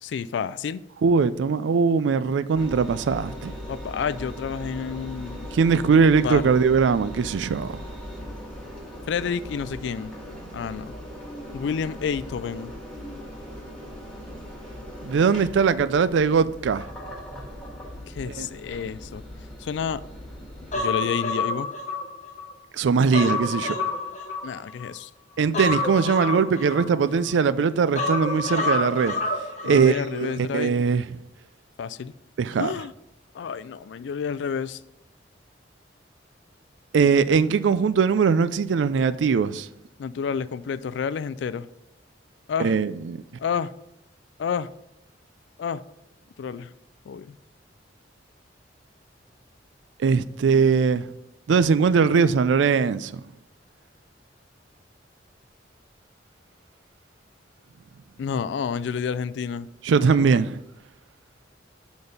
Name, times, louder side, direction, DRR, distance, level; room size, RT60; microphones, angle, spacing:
voice 1, 0.0-0.8 3.7-5.5 6.2-6.4 9.1-10.1 10.5-10.9 11.5-12.7 18.1-19.2 19.6-20.0 20.7-21.7 24.4-25.1 29.6-30.8 31.8-32.1 32.6-32.9 33.3-34.8 40.0-41.7 42.5-42.7 43.4-43.7 44.4-44.7 45.6-45.8 46.4-46.7 47.1-47.3 58.2-59.7, left 6 dB, 70° left, 0.3 m, -29 dB
voice 2, 1.0-3.5 5.5-7.7 15.0-16.8 18.4-18.5 22.7-23.8 25.4-29.1 29.6-31.0 32.4-32.7 36.9-39.7 42.6-43.2 50.0-51.0 51.5-53.1 59.8-60.6, right 5 dB, 75° right, 0.4 m, -21 dB
Engine, 2.5-20.8, equal, 5° left, 1.7 m, -39 dB
Human voice, 20.7-22.5 22.9-24.9 25.5-27.3 28.0-29.9 30.2-30.3, left 3 dB, 40° left, 0.9 m, -28 dB
6.8 x 4.1 x 5.1 m
head